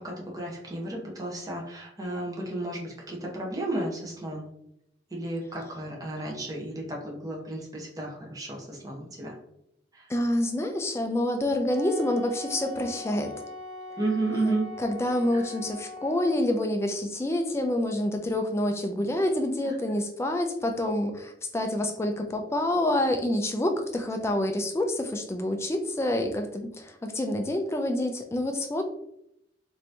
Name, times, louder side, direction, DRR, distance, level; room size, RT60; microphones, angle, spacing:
voice 1, 0.0-4.5 5.1-9.4 9.9-10.1 14.0-14.7 15.3-15.4, right 2 dB, 20° right, -2 dB, 0.8 m, -33 dB
voice 2, 10.1-13.3 14.3-28.8, left 1 dB, 15° left, 4 dB, 0.3 m, -27 dB
Wind instrument woodwind instrument, 11.7-16.6, left 2 dB, 85° right, 0.9 m, -41 dB
2.9 x 2.6 x 3.3 m, 0.77 s
head